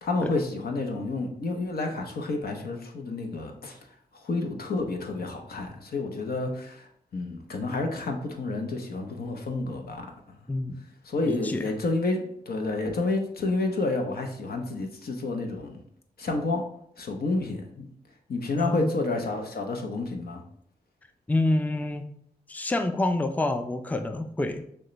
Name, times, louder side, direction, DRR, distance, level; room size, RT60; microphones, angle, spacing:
voice 1, 0.0-3.8 4.1-10.1 11.0-15.8 16.2-16.6 17.0-17.9 18.3-20.4, left 3 dB, 70° left, 3 dB, 0.7 m, -30 dB
voice 2, 10.5-10.8 11.2-11.7 18.6-19.0 21.3-22.0 22.5-24.6, left 2 dB, 10° left, 8 dB, 0.4 m, -27 dB
6.3 x 2.2 x 3.1 m, 0.68 s
cardioid pair, 40°, 16 cm